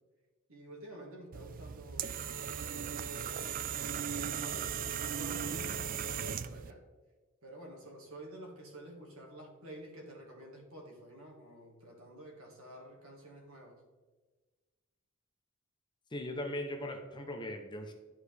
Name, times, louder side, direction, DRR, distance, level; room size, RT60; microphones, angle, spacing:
voice 1, 0.5-2.3 2.5-6.8 7.4-13.8, right 1 dB, 70° right, -1 dB, 1.9 m, -50 dB
sound 1, 1.3-6.7, right 8 dB, 40° right, 0.3 m, -37 dB
voice 2, 16.1-17.9, left 1 dB, 20° left, 4 dB, 0.7 m, -39 dB
11.5 x 4.8 x 3.4 m, 1.3 s
head